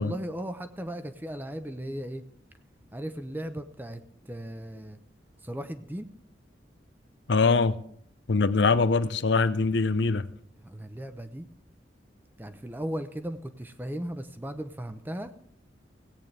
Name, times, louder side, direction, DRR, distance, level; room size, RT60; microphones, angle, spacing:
voice 1, 0.0-2.2 2.9-4.0 4.3-5.0 5.4-6.1 10.6-11.5 12.4-15.3, equal, 10° right, 0.7 m, -36 dB
voice 2, 7.3-7.8 8.3-10.3, left 4 dB, 75° left, 0.6 m, -23 dB
17.5 x 9.0 x 3.3 m
head